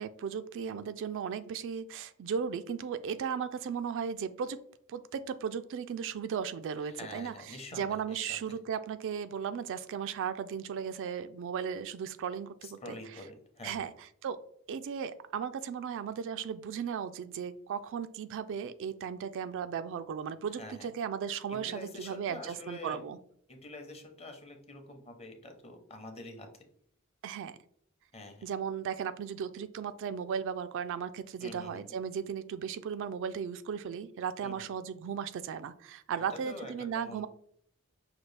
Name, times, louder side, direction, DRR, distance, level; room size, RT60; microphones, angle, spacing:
voice 1, 0.0-4.6 4.9-13.2 13.6-14.4 14.7-23.2 27.2-27.6 28.4-37.3, right 7 dB, 60° right, 11 dB, 0.3 m, -36 dB
voice 2, 6.8-8.6 12.6-13.9 20.6-20.9 21.5-23.0 23.5-26.5 28.1-28.4 31.4-31.8 34.4-34.6 36.3-37.3, left 2 dB, 30° left, 4 dB, 0.8 m, -46 dB
5.9 x 2.3 x 3.2 m, 0.65 s
head